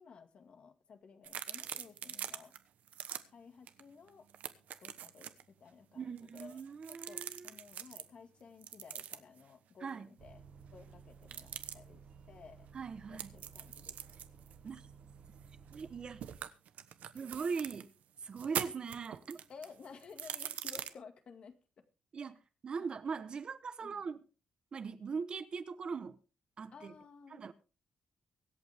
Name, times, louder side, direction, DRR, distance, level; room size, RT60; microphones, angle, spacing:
voice 1, 0.0-2.5 3.3-4.3 4.8-5.3 5.6-6.6 6.9-10.4 10.7-12.7 13.1-14.0 19.5-21.6 22.8-22.9 23.8-24.0 26.7-27.5, left 5 dB, 50° left, 1.9 m, -55 dB
sound 1, 1.2-2.6 2.9-3.2 3.7-3.8 4.1-5.4 6.2-8.0 8.6-9.4 11.2-11.7 13.2-15.9 16.2-17.9 18.3-20.9, right 10 dB, 85° right, 1.1 m, -43 dB
voice 2, 5.9-7.6 9.8-10.1 12.7-13.3 14.6-14.9 15.7-16.2 17.1-17.9 18.2-19.4 22.1-24.2 24.7-26.2 26.6-26.9 27.3-27.5, right 5 dB, 40° right, 1.0 m, -41 dB
Bus, 10.2-16.4, right 6 dB, 55° right, 1.6 m, -56 dB
24.0 x 8.5 x 3.5 m
wide cardioid pair, 160°, 2 cm